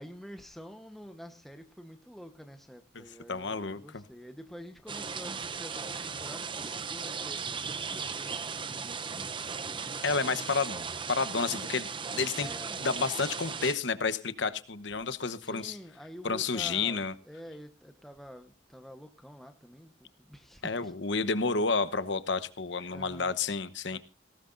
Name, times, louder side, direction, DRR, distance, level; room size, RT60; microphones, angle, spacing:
voice 1, 0.0-8.6 10.2-10.4 12.3-12.8 15.4-20.9 22.8-23.3 23.9-24.0, equal, ahead, 1.0 m, -48 dB
voice 2, 3.3-4.0 10.0-12.5 12.8-15.7 16.2-17.1 20.6-24.0, left 4 dB, 60° left, 1.0 m, -30 dB
sound 1, 4.9-13.7, right 5 dB, 25° right, 0.6 m, -37 dB
18.5 x 18.0 x 2.6 m
head